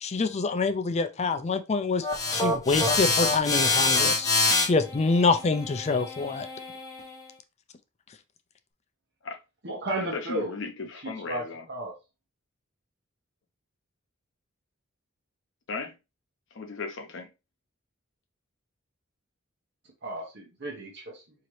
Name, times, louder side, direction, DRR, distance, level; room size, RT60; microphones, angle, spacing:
voice 1, 0.0-2.1 2.3-6.5, left 4 dB, 35° left, 0.4 m, -26 dB
sound 1, 2.0-7.2, left 3 dB, 15° left, 1.1 m, -26 dB
voice 2, 9.6-10.6 10.9-11.9 20.0-21.2, right 1 dB, 60° right, 1.0 m, -34 dB
voice 3, 10.3-11.6 15.7-15.9 16.6-17.3, left 4 dB, 65° left, 0.7 m, -36 dB
5.0 x 2.8 x 3.1 m
head